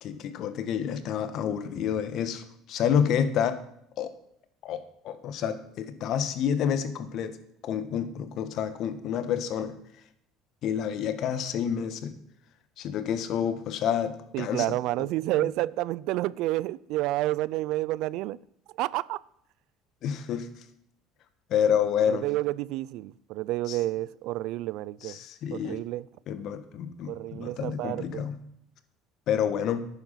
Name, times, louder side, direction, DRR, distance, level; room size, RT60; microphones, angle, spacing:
voice 1, 0.0-3.6 4.0-4.1 4.6-7.4 7.6-9.7 10.6-12.1 12.8-14.8 20.0-20.5 21.5-22.3 23.7-23.8 25.0-25.8 26.3-28.4 29.3-29.8, left 8 dB, 60° left, 1.5 m, -29 dB
voice 2, 14.3-18.4 18.8-19.2 22.1-25.2 25.5-26.1 27.1-28.3, right 17 dB, 70° right, 0.4 m, -30 dB
11.5 x 9.2 x 5.8 m
supercardioid pair, 95°, 0 cm